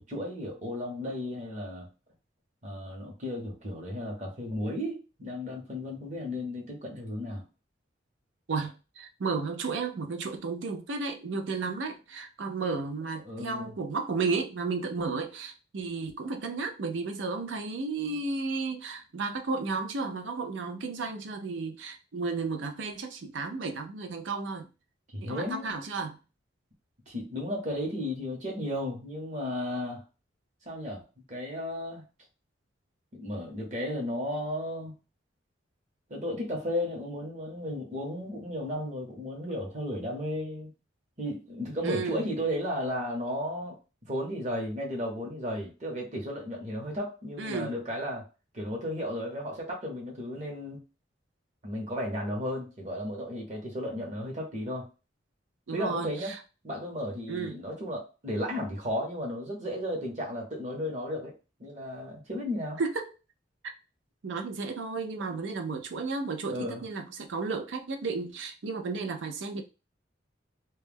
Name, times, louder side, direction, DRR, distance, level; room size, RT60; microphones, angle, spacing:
voice 1, 0.0-1.9 2.6-7.4 13.2-13.7 25.1-25.7 27.1-30.0 30.7-32.0 33.1-34.9 36.1-40.7 41.2-43.8 44.1-48.3 48.5-50.8 51.6-54.9 55.7-56.4 56.6-61.3 61.6-62.8 65.3-65.4 66.5-66.8, left 1 dB, 40° right, 0.8 m, -34 dB
voice 2, 8.5-24.7 25.2-26.2 41.8-42.3 47.4-47.7 55.7-56.4 57.3-57.6 62.8-63.1 64.2-69.6, right 4 dB, 75° right, 0.5 m, -33 dB
2.2 x 2.1 x 3.3 m
head